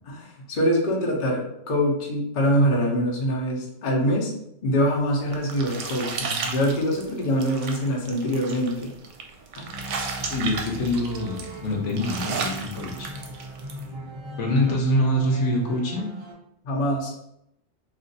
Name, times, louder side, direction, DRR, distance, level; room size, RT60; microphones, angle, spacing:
voice 1, 0.1-4.3 4.6-8.9 9.5-9.7 16.6-17.4, equal, 45° left, -2 dB, 0.8 m, -24 dB
sound 1, 4.9-13.8, right 5 dB, 75° right, 0.9 m, -34 dB
sound 2, 9.6-16.3, equal, 40° right, 0.4 m, -39 dB
voice 2, 10.3-13.1 13.7-16.1, left 1 dB, 70° left, 0 dB, 1.0 m, -25 dB
2.5 x 2.4 x 3.9 m, 0.78 s
omnidirectional pair, 1.3 m